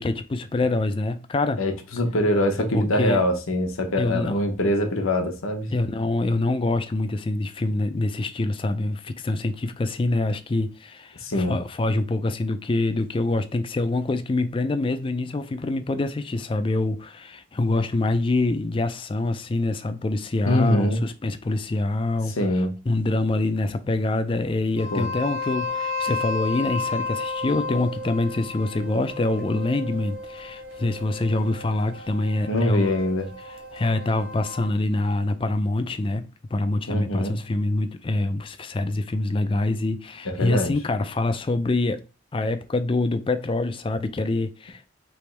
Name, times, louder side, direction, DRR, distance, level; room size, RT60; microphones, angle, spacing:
voice 1, 0.0-1.6 2.7-3.2 4.0-4.4 5.7-33.0 33.7-42.0 42.3-44.9, left 2 dB, 25° left, 0.3 m, -25 dB
voice 2, 1.6-5.7 11.2-11.6 20.4-21.0 22.3-22.7 24.9-25.1 32.5-33.3 36.9-37.3 40.2-40.7, left 1 dB, 90° left, 1.0 m, -23 dB
sound 1, 24.8-34.7, left 3 dB, 45° right, 0.9 m, -33 dB
3.4 x 3.1 x 4.4 m
head